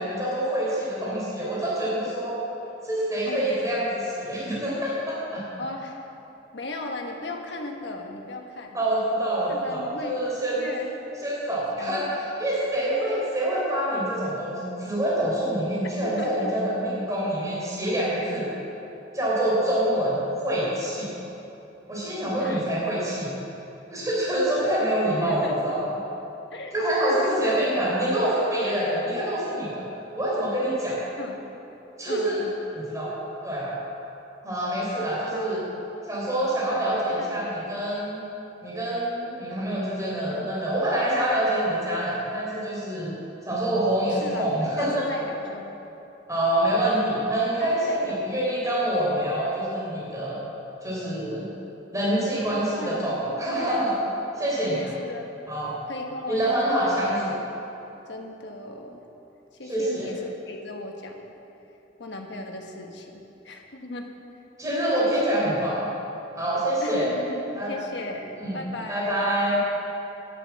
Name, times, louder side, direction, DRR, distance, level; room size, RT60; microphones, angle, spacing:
voice 1, 0.0-2.4 2.8-5.4 8.7-10.7 11.2-18.5 19.1-21.1 21.9-23.3 23.9-26.0 26.7-29.9 30.1-31.0 32.0-32.4 32.7-33.1 33.4-33.7 34.4-35.6 36.1-38.2 38.6-43.1 43.4-45.1 46.3-50.4 50.8-51.5 51.9-53.9 54.4-54.9 55.5-55.8 56.3-57.3 59.7-60.1 64.6-65.9 66.4-67.1 67.6-67.7 68.4-68.5 68.9-69.6, right 1 dB, 20° right, -7 dB, 3.6 m, -26 dB
voice 2, 5.6-6.1 6.5-8.8 9.2-10.2 10.6-10.9 11.7-12.4 16.0-16.5 22.3-22.6 24.6-25.6 26.5-26.8 27.1-27.7 31.2-31.4 32.1-32.5 35.3-35.7 36.6-37.4 40.3-40.5 44.0-45.7 47.6-48.2 52.5-54.1 54.6-55.3 55.9-57.0 58.1-59.0 59.5-61.3 62.0-64.1 65.0-65.2 66.8-69.2, left 2 dB, 65° left, 2 dB, 1.5 m, -37 dB
11.0 x 11.0 x 7.3 m, 2.9 s
head